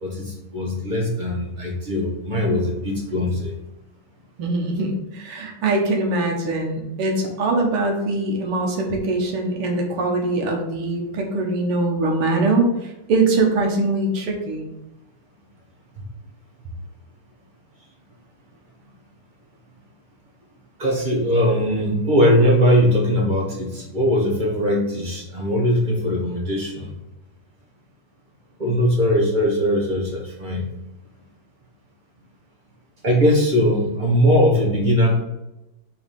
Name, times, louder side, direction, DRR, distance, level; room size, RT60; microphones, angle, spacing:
voice 1, 0.0-3.5 20.8-26.9 28.6-30.6 33.0-35.2, equal, 25° right, -1 dB, 1.2 m, -20 dB
voice 2, 4.4-12.7 13.1-14.7, right 2 dB, 85° right, 2 dB, 2.1 m, -22 dB
4.7 x 4.2 x 5.3 m, 0.95 s
omnidirectional pair, 2.4 m